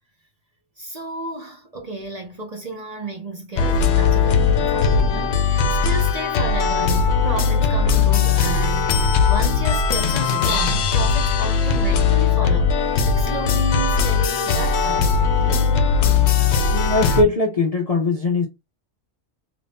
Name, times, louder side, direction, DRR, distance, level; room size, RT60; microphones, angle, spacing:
voice 1, 0.8-15.8, right 2 dB, 40° right, 0.6 m, -32 dB
sound 1, 3.6-17.2, left 5 dB, 70° left, 0.8 m, -19 dB
voice 2, 16.7-18.5, left 2 dB, 45° left, 0.5 m, -20 dB
3.0 x 2.6 x 3.4 m
omnidirectional pair, 1.2 m